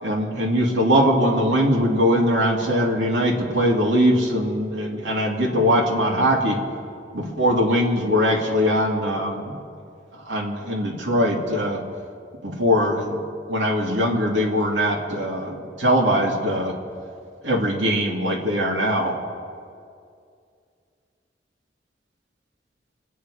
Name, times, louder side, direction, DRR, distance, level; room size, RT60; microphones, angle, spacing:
voice 1, 0.0-6.6 7.1-9.5 10.3-11.8 12.4-13.2 13.5-16.7 17.4-19.1, equal, 85° right, -1 dB, 2.6 m, -21 dB
26.0 x 9.4 x 4.9 m, 2.3 s
head